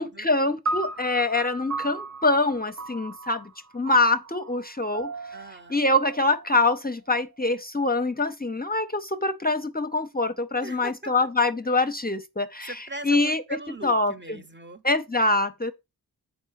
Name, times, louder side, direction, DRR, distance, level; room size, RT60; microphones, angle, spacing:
voice 1, 0.0-5.1 5.7-13.4 13.8-14.4 14.8-15.7, left 2 dB, 25° left, 0.7 m, -24 dB
sound 1, 0.7-7.1, right 3 dB, 45° right, 0.6 m, -36 dB
voice 2, 5.3-5.8 10.6-11.1 12.6-14.8, right 1 dB, 30° right, 1.0 m, -40 dB
6.0 x 4.5 x 5.8 m
cardioid pair, 45°, 38 cm